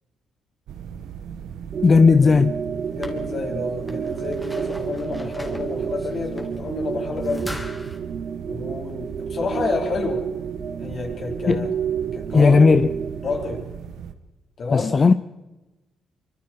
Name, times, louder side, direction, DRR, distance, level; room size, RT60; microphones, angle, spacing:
sound 1, 0.7-14.1, right 8 dB, 80° right, 1.5 m, -38 dB
sound 2, 1.7-13.6, right 7 dB, 50° right, 1.0 m, -30 dB
voice 1, 1.8-2.6 11.5-11.7 12.3-12.9 14.7-15.1, left 4 dB, 35° left, 0.6 m, -15 dB
sound 3, 2.8-8.0, left 1 dB, 10° left, 3.0 m, -40 dB
voice 2, 2.9-7.6 8.5-10.3 10.8-11.7 12.1-12.8 13.2-13.7 14.6-14.9, left 4 dB, 50° left, 5.0 m, -29 dB
25.0 x 24.0 x 4.9 m
cardioid pair, 90°, 0 cm